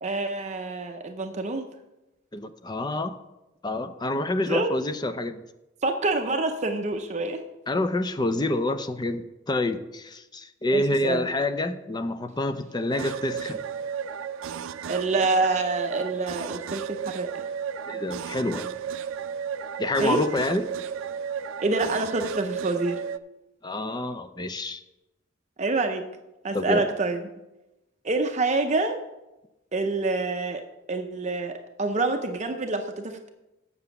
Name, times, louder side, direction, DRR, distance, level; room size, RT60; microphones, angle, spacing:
voice 1, 0.0-1.7 4.5-4.7 5.8-7.4 10.7-11.3 14.9-17.5 20.0-20.2 21.6-23.0 25.6-26.0 26.4-27.2 28.0-29.0 29.7-30.6 30.9-33.3, right 3 dB, 35° right, 6 dB, 0.6 m, -27 dB
voice 2, 2.3-3.2 3.6-5.4 7.7-13.6 17.9-18.7 19.8-20.7 23.6-24.8 26.5-26.9, left 1 dB, 20° left, 10 dB, 0.5 m, -27 dB
sound 1, 12.9-23.2, right 7 dB, 80° right, 0.4 m, -34 dB
7.1 x 6.7 x 6.9 m, 0.98 s
head